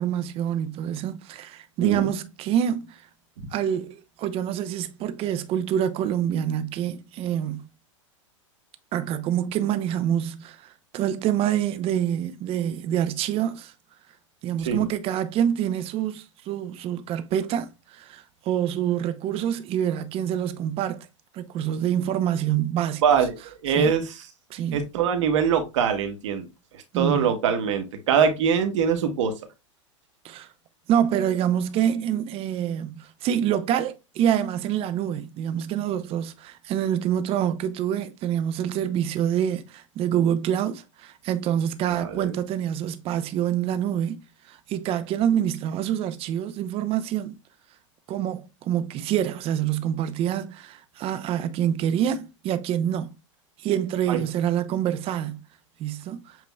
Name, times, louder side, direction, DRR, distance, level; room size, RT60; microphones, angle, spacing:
voice 1, 0.0-3.0 3.5-7.6 8.9-13.7 14.4-21.1 21.3-23.0 23.8-23.9 24.5-24.9 26.9-27.3 30.2-30.5 30.9-44.2 44.5-47.4 48.1-53.1 53.6-55.4 55.8-56.4, right 10 dB, 35° right, 0.7 m, -26 dB
voice 2, 23.0-24.3 24.7-26.5 26.7-29.3 41.9-42.4 54.1-54.2, right 7 dB, 65° right, 1.3 m, -23 dB
7.6 x 3.0 x 2.3 m
hypercardioid pair, 105°, 16 cm